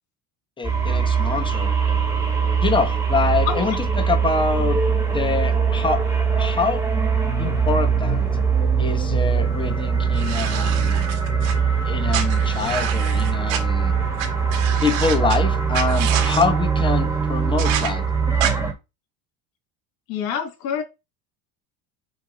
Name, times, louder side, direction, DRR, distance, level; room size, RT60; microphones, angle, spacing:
voice 1, 0.6-1.8 2.6-4.8 5.1-6.0 6.4-6.8 7.4-8.3 8.8-11.1 11.8-13.9 14.8-18.0, left 4 dB, 15° left, 1.1 m, -25 dB
sound 1, 0.6-18.7, right 6 dB, 10° right, 1.8 m, -22 dB
sound 2, 10.2-11.5 12.1-13.6 14.2-14.3 14.5-15.4 15.7-16.4 17.6-17.9 18.4-18.5, right 9 dB, 90° right, 2.1 m, -28 dB
voice 2, 20.1-20.8, left 8 dB, 65° left, 2.4 m, -26 dB
7.1 x 2.9 x 5.2 m
cardioid pair, 135°, 37 cm